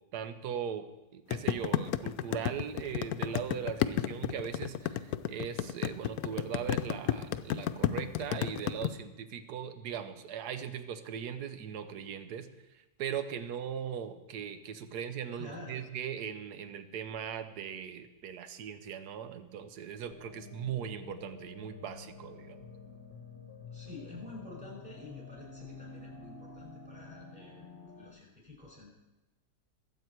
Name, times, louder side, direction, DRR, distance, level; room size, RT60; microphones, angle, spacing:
voice 1, 0.1-0.8 1.1-12.5 12.7-22.6, right 8 dB, 75° right, 10 dB, 1.4 m, -39 dB
sound 1, 1.3-8.9, left 12 dB, 70° left, 1.0 m, -31 dB
voice 2, 15.4-15.8 23.7-27.6 27.9-28.9, left 2 dB, 25° right, -3 dB, 6.0 m, -48 dB
sound 2, 20.1-28.1, left 4 dB, 40° left, 1.1 m, -49 dB
21.5 x 8.2 x 4.6 m, 1.0 s
omnidirectional pair, 1.7 m